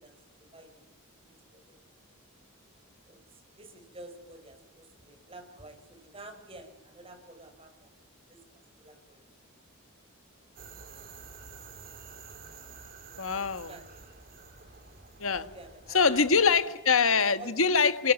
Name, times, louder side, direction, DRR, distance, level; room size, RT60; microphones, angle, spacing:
voice 1, 1.2-1.8 3.0-3.2 3.6-7.9 8.3-8.4 8.8-9.2 13.3-13.9 15.3-16.7 17.0-17.5, right 2 dB, 25° right, 7 dB, 5.1 m, -49 dB
sound 1, 10.6-16.6, right 5 dB, 45° right, 4.0 m, -49 dB
voice 2, 13.2-13.8 15.2-15.5 15.9-18.1, left 5 dB, 65° left, 11 dB, 1.6 m, -24 dB
28.5 x 22.5 x 9.4 m, 0.94 s
head